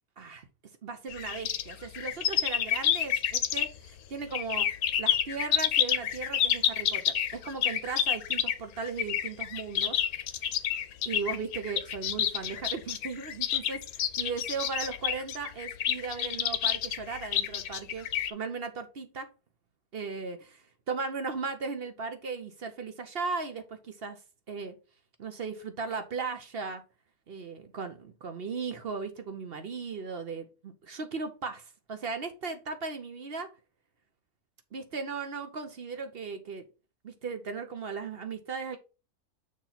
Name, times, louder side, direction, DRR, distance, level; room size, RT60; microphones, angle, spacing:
voice 1, 0.2-0.5 0.8-3.7 4.1-4.7 5.0-10.0 10.4-10.5 11.0-19.3 19.9-24.2 24.5-24.7 25.2-26.8 27.3-33.5 34.7-36.6 37.0-38.8, right 4 dB, 50° right, 0.9 m, -37 dB
sound 1, 1.1-3.9 4.3-18.3, left 10 dB, 80° left, 1.1 m, -29 dB
6.5 x 3.1 x 5.6 m
omnidirectional pair, 1.6 m